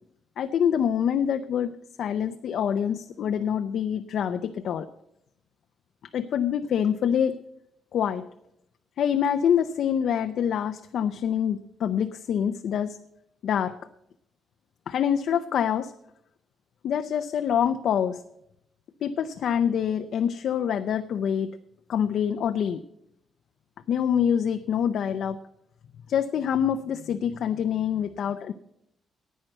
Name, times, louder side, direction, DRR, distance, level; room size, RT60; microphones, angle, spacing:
voice 1, 0.4-4.9 6.1-7.4 7.9-8.3 9.0-13.0 13.4-13.7 14.9-15.9 16.8-18.2 19.0-21.5 21.9-22.8 23.9-25.4 26.1-28.5, left 8 dB, 65° left, 8 dB, 0.5 m, -26 dB
10.5 x 9.2 x 7.7 m, 0.79 s
cardioid pair, 150°, 0 cm